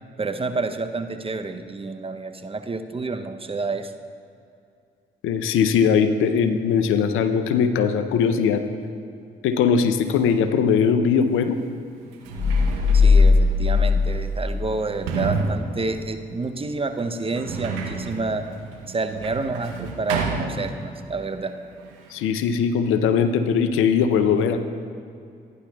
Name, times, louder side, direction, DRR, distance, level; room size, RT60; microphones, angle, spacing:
voice 1, 0.2-3.9 12.9-18.5 18.9-21.6, right 3 dB, 25° right, 8 dB, 0.7 m, -29 dB
voice 2, 5.2-8.6 9.4-11.6 22.1-24.6, left 6 dB, 70° left, 9 dB, 0.6 m, -20 dB
Sliding door, 11.3-11.4 12.0-21.2 21.5-22.3, right 4 dB, 85° right, 0.8 m, -31 dB
sound 1, 12.4-15.4, left 4 dB, 35° left, 2.7 m, -18 dB
17.0 x 10.0 x 2.3 m, 2.5 s
hypercardioid pair, 40°, 21 cm